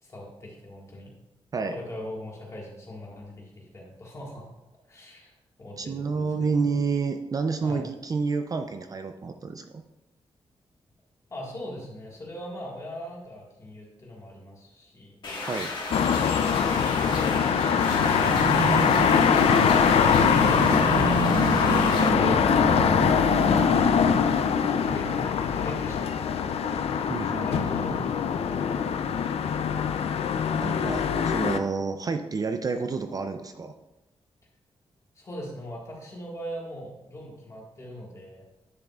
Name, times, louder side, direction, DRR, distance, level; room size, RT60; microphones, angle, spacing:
voice 1, 0.0-1.1 1.7-4.5 4.9-6.7 7.6-7.9 11.3-15.2 21.3-22.7 24.7-26.9 27.1-29.7 35.1-38.5, equal, 30° left, -2 dB, 1.7 m, -41 dB
voice 2, 5.8-9.8 15.4-15.7 20.1-20.8 27.1-28.0 30.6-33.7, right 4 dB, 35° right, 7 dB, 0.4 m, -30 dB
sound 1, 15.2-22.1, left 3 dB, 50° left, 1.5 m, -34 dB
sound 2, 15.9-31.6, left 7 dB, 85° left, 0.4 m, -23 dB
sound 3, 17.1-25.2, right 3 dB, 70° right, 0.9 m, -30 dB
10.0 x 6.3 x 2.4 m, 0.99 s
wide cardioid pair, 160°, 10 cm